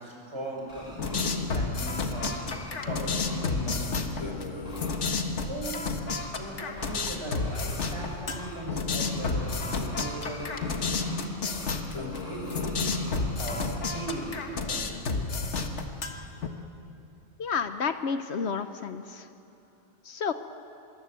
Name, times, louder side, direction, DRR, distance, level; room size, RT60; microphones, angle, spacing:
voice 1, 0.0-2.3 2.8-4.4 5.4-5.9 6.3-11.4 11.9-13.0 13.4-14.9, right 1 dB, 25° right, -3 dB, 6.8 m, -39 dB
sound 1, 0.6-1.3 1.7-2.8 3.2-3.5 4.6-5.0 6.1-6.4 6.7-7.1 7.3-8.6 9.0-11.2 11.5-11.8 12.1-13.7 14.0-14.4, equal, 35° left, 6.2 m, -45 dB
sound 2, 1.0-16.5, left 4 dB, 90° left, 1.8 m, -31 dB
voice 2, 17.4-19.3 20.0-20.3, left 6 dB, 70° left, 10 dB, 1.1 m, -30 dB
25.0 x 23.0 x 8.2 m, 2.7 s
omnidirectional pair, 1.2 m